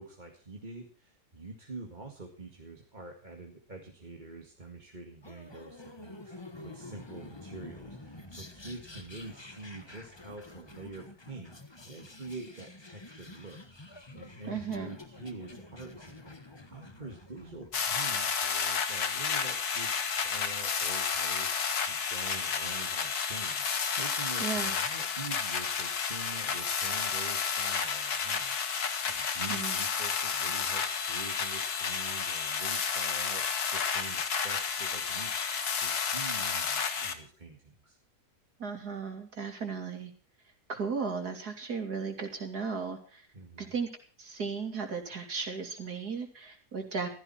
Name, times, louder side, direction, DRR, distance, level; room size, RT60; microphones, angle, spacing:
voice 1, 0.0-13.6 13.9-28.6 28.8-38.0 43.3-43.7, right 3 dB, 30° right, 2 dB, 2.1 m, -46 dB
sound 1, 5.2-17.9, left 2 dB, 20° left, 1.3 m, -49 dB
voice 2, 14.5-15.0 24.4-24.7 29.5-29.8 38.6-40.1 40.7-43.3 43.6-43.9 44.2-47.1, right 5 dB, 80° right, 4 dB, 3.6 m, -35 dB
sound 2, 17.7-37.1, left 6 dB, 75° left, 2.1 m, -31 dB
15.5 x 15.0 x 4.3 m, 0.41 s
omnidirectional pair, 1.7 m